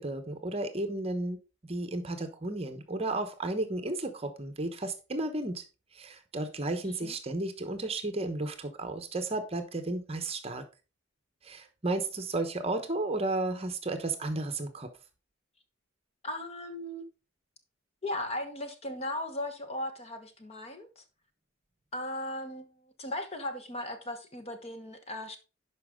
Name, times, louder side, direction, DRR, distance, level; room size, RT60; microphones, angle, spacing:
voice 1, 0.0-5.6 5.9-10.6 11.4-14.9, right 2 dB, 30° right, 1.1 m, -33 dB
voice 2, 16.2-17.0 18.0-21.0 21.9-25.4, left 1 dB, 30° left, 1.1 m, -37 dB
11.5 x 5.2 x 3.7 m
head